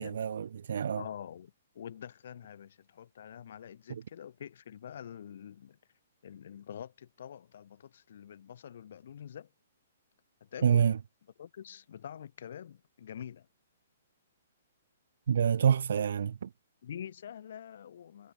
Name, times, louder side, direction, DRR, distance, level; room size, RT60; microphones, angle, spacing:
voice 1, 0.0-1.0 3.9-4.0 10.6-11.0 15.3-16.5, right 8 dB, 65° right, 1.8 m, -27 dB
voice 2, 1.0-5.8 6.2-9.5 10.5-10.9 11.4-13.4 16.8-18.3, left 9 dB, 60° left, 2.8 m, -46 dB
figure-of-eight pair, 125°, 0 cm